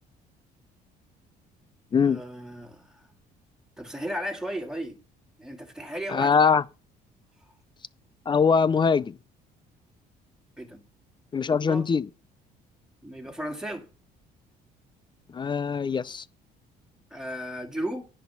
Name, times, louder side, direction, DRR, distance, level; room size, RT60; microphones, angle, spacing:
voice 1, 2.0-3.1 3.8-5.0 5.4-6.5 10.6-10.8 11.5-11.9 13.0-13.9 17.1-18.1, equal, 5° right, 2.2 m, -35 dB
voice 2, 6.1-6.6 8.3-9.2 11.3-12.1 15.3-16.2, left 5 dB, 25° left, 0.5 m, -22 dB
10.5 x 5.5 x 5.8 m
cardioid pair, 110°, 17 cm